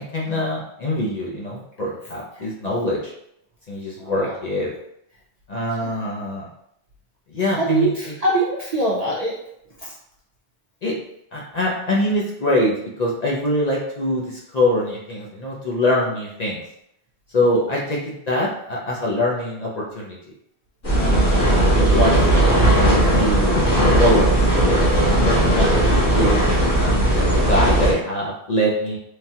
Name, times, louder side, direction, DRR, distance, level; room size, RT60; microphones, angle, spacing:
voice 1, 0.0-3.1 3.7-4.7 5.5-6.5 7.3-8.1 10.8-11.0 11.3-16.6 17.3-20.2 20.9-23.6 24.0-24.9 25.2-26.4 26.8-29.0, left 1 dB, 50° left, -3 dB, 0.5 m, -24 dB
voice 2, 4.0-4.3 5.8-5.9 7.6-9.4 9.8-9.9 21.4-21.5, right 2 dB, 55° right, -4 dB, 0.4 m, -23 dB
sound 1, 20.8-27.9, right 1 dB, 90° left, 1.5 m, -17 dB
3.2 x 2.2 x 2.7 m, 0.76 s
omnidirectional pair, 1.1 m